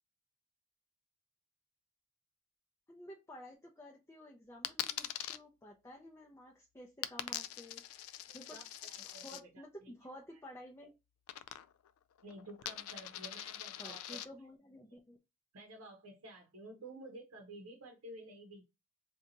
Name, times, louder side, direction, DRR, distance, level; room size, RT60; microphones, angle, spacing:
voice 1, 2.9-8.1 8.3-8.6 9.0-10.9 13.8-15.2, left 1 dB, 15° left, 0.4 m, -53 dB
Coin (dropping), 4.6-5.4 7.0-9.4 11.3-11.9 12.2-14.3, left 12 dB, 80° left, 0.3 m, -42 dB
voice 2, 8.3-9.5 9.8-9.9 10.3-10.4 12.2-14.2 15.5-18.6, right 1 dB, 90° right, 0.7 m, -52 dB
2.7 x 2.3 x 3.9 m
head